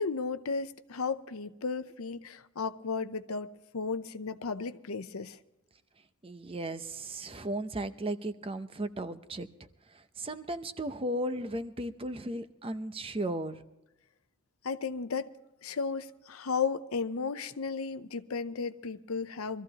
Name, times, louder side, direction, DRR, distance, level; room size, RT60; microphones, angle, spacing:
voice 1, 0.0-3.5 3.7-5.4 14.6-15.3 15.6-19.6, left 5 dB, 80° left, 0.7 m, -34 dB
voice 2, 6.2-9.5 9.9-13.6, right 1 dB, 25° right, 0.7 m, -35 dB
24.0 x 14.5 x 2.9 m
head